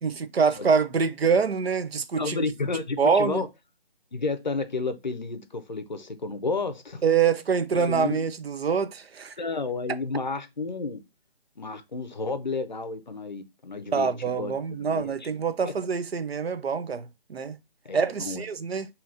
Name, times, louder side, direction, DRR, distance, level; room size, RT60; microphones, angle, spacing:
voice 1, 0.0-2.4 3.0-3.5 7.0-9.3 13.9-17.6 17.9-18.9, right 6 dB, 80° right, 0.6 m, -25 dB
voice 2, 2.2-3.5 4.1-7.0 7.7-8.2 9.4-11.0 11.6-15.3 15.6-15.7 17.8-18.4, left 3 dB, 50° left, 0.5 m, -31 dB
5.5 x 2.8 x 2.4 m
figure-of-eight pair, 175°, 30 cm